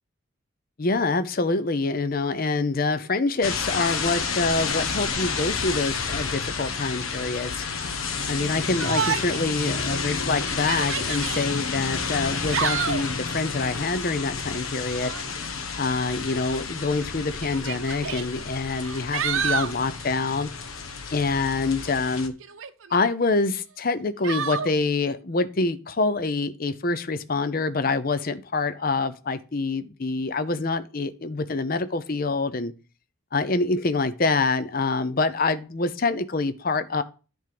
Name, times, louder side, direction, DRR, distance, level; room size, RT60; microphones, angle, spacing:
voice 1, 0.8-7.7 8.3-15.1 15.8-20.5 21.1-22.3 22.9-32.7 33.3-37.0, left 3 dB, 45° left, 0.6 m, -26 dB
sound 1, 3.4-22.3, left 5 dB, 85° left, 1.1 m, -30 dB
Yell, 8.8-9.5 9.9-10.0 10.5-11.4 12.3-13.1 14.9-15.3 16.5-16.6 17.4-18.2 18.8-19.8 22.4-23.1 24.2-24.7, right 7 dB, 75° right, 0.7 m, -29 dB
10.5 x 3.6 x 5.9 m
head